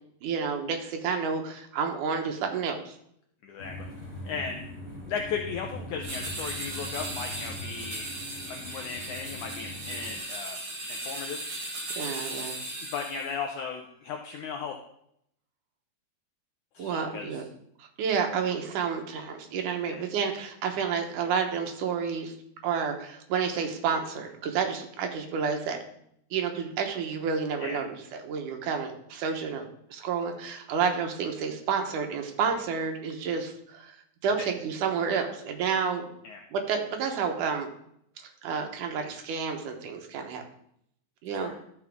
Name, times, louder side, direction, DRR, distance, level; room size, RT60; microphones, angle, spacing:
voice 1, 0.2-2.9 12.0-12.6 16.8-17.4 18.0-22.3 22.6-25.8 26.3-33.9 34.2-36.1 36.5-37.7 38.2-40.4 41.2-41.5, right 6 dB, 70° right, 4 dB, 2.4 m, -30 dB
voice 2, 3.4-3.7 4.2-4.7 5.1-8.1 8.4-10.6 10.9-11.4 12.9-14.8 16.7-17.4 19.9-20.0 27.6-27.8 36.2-36.4 41.3-41.5, left 6 dB, 75° left, 2 dB, 1.9 m, -36 dB
sound 1, 3.6-10.2, left 1 dB, 20° left, 3.5 m, -42 dB
sound 2, 6.0-13.3, right 1 dB, 45° right, 4.1 m, -37 dB
13.5 x 5.9 x 3.6 m, 0.72 s
omnidirectional pair, 4.1 m